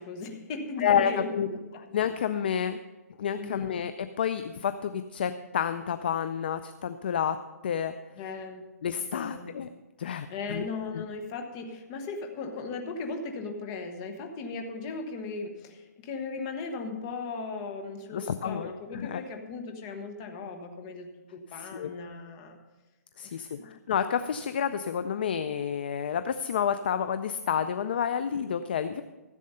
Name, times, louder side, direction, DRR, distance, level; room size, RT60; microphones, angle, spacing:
voice 1, 0.0-1.9 3.4-3.8 8.2-8.7 9.0-9.5 10.3-22.6 23.2-23.7 28.3-28.4, left 4 dB, 20° left, 5 dB, 1.1 m, -37 dB
voice 2, 0.8-1.5 1.9-2.8 3.2-7.4 7.6-7.9 8.8-9.7 10.0-10.6 10.9-11.0 18.1-19.2 21.5-21.9 23.2-29.0, left 8 dB, 35° left, 11 dB, 0.4 m, -29 dB
14.5 x 7.5 x 5.5 m, 1.2 s
hypercardioid pair, 175°, 9 cm